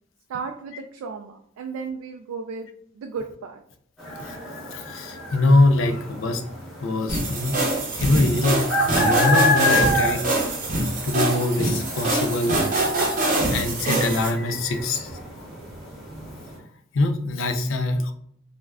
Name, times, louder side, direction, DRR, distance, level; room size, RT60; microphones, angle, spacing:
voice 1, 0.3-2.7 3.0-3.6, right 5 dB, 85° right, 3 dB, 0.3 m, -34 dB
sound 1, 4.0-16.6, left 1 dB, ahead, 0.8 m, -29 dB
voice 2, 4.7-6.4 6.8-7.6 8.0-10.2 11.0-12.6 13.2-15.1 16.9-18.1, left 2 dB, 65° left, 7 dB, 0.4 m, -23 dB
sound 2, 7.1-14.3, right 2 dB, 40° right, 0.7 m, -24 dB
2.4 x 2.1 x 3.4 m, 0.68 s
head